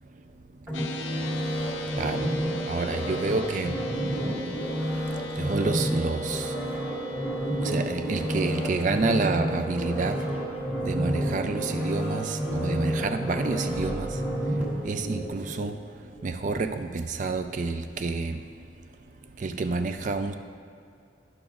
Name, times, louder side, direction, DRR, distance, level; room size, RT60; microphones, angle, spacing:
sound 1, 0.7-13.3, left 5 dB, 80° left, 0.5 m, -42 dB
sound 2, 0.7-15.7 16.1-16.3, equal, 10° right, 1.4 m, -30 dB
voice 1, 2.0-2.3 2.7-3.7 5.4-6.5 7.6-10.2 10.8-14.1 14.8-15.7 16.2-18.4 19.4-20.3, right 3 dB, 40° right, 8 dB, 0.4 m, -28 dB
12.5 x 6.0 x 2.5 m, 2.4 s
head